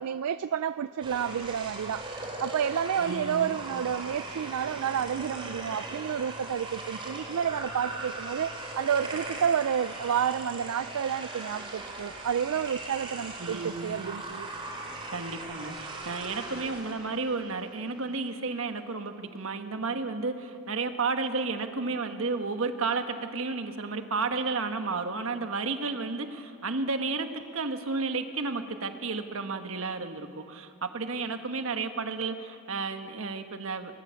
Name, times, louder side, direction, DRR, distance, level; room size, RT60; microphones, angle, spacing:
voice 1, 0.0-2.1 2.4-14.5, right 8 dB, 90° right, 13 dB, 0.4 m, -30 dB
sound 1, 1.0-18.3, right 2 dB, 25° right, 2.9 m, -39 dB
voice 2, 3.0-3.6 13.4-14.0 15.1-33.9, right 4 dB, 65° right, 7 dB, 1.3 m, -32 dB
20.5 x 20.0 x 7.0 m, 2.5 s
head